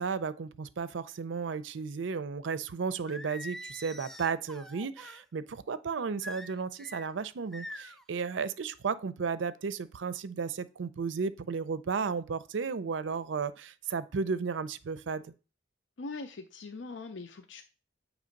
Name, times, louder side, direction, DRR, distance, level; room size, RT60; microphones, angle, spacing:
voice 1, 0.0-15.3, right 5 dB, 80° right, 0.5 m, -34 dB
Singing, 3.1-5.2 6.2-7.1 7.5-8.0, left 1 dB, ahead, 0.4 m, -44 dB
voice 2, 16.0-17.6, left 3 dB, 75° left, 0.6 m, -41 dB
8.5 x 3.1 x 5.1 m
head